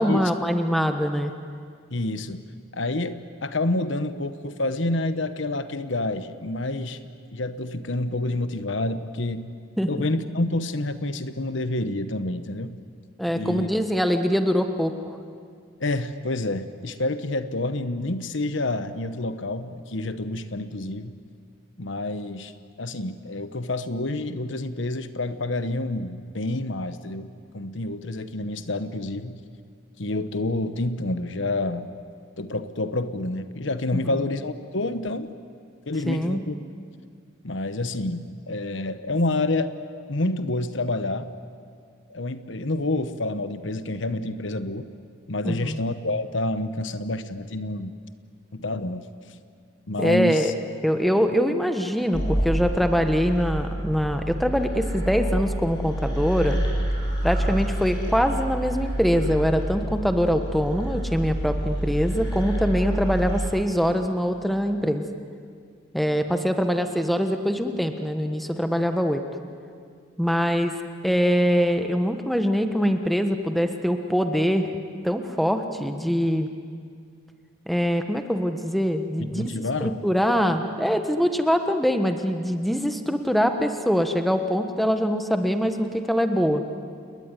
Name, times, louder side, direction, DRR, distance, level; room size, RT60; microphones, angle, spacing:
voice 1, 0.0-1.3 9.8-10.1 13.2-15.2 33.9-34.1 36.1-36.4 45.4-45.8 50.0-50.5 50.8-56.7 57.2-65.0 65.9-69.2 70.2-70.7 71.0-74.7 75.0-76.5 77.7-79.5 79.8-86.7, equal, ahead, 6 dB, 1.3 m, -23 dB
voice 2, 1.9-2.4 2.7-7.0 7.3-9.5 9.9-12.8 13.3-13.7 15.8-21.1 21.8-22.5 22.8-29.4 30.0-31.9 32.4-35.3 35.9-36.6 37.4-39.7 40.1-41.3 42.1-44.9 45.3-47.9 48.5-49.1 49.9-50.5 79.3-80.0, left 2 dB, 65° left, 11 dB, 1.2 m, -28 dB
sound 1, 52.1-63.5, right 1 dB, 20° left, 7.3 m, -28 dB
29.0 x 20.5 x 9.8 m, 2.2 s
head